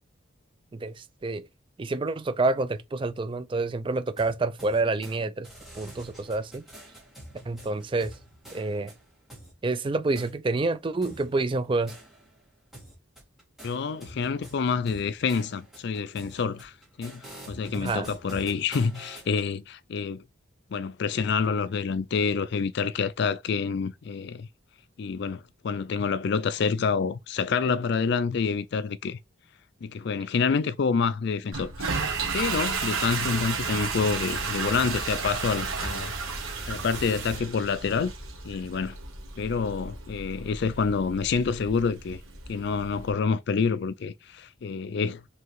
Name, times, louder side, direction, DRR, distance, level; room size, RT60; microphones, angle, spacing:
voice 1, 0.7-1.5 1.8-5.5 5.7-6.6 7.5-8.2 8.5-8.9 9.6-11.9 17.7-18.1, right 3 dB, 25° right, 0.3 m, -28 dB
sound 1, 4.2-5.2 5.4-9.5 10.1-10.3 11.0-12.4 12.7-19.5, right 1 dB, ahead, 2.1 m, -47 dB
voice 2, 13.6-16.7 17.0-17.2 17.5-20.2 20.7-24.5 25.0-29.2 29.8-31.9 32.3-36.1 36.7-38.1 38.4-39.0 39.4-42.2 42.5-45.2, left 5 dB, 55° left, 0.4 m, -27 dB
Toilet flush, 31.5-43.1, right 4 dB, 90° right, 1.2 m, -34 dB
sound 2, 31.9-37.4, right 5 dB, 60° right, 0.9 m, -36 dB
4.7 x 3.3 x 3.2 m
head